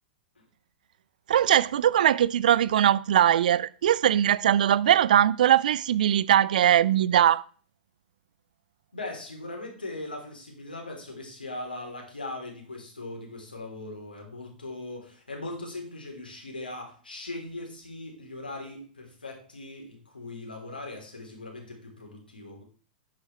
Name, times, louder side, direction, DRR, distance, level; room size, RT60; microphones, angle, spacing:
voice 1, 1.3-7.4, right 10 dB, 60° right, 0.4 m, -21 dB
voice 2, 8.9-22.6, left 2 dB, 80° left, 3.4 m, -39 dB
10.5 x 8.1 x 3.3 m
figure-of-eight pair, 100°, 5 cm